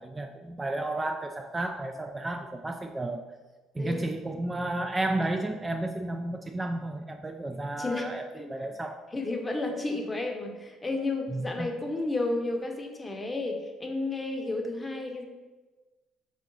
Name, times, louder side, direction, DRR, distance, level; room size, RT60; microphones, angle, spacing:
voice 1, 0.0-3.2 3.8-9.0 11.3-11.7, right 2 dB, 20° right, 5 dB, 0.3 m, -32 dB
voice 2, 3.8-4.1 4.3-4.4 7.8-8.1 8.4-8.7 9.1-15.2, left 2 dB, 20° left, 3 dB, 0.8 m, -32 dB
3.7 x 3.6 x 3.9 m, 1.2 s
supercardioid pair, 70°, 0 cm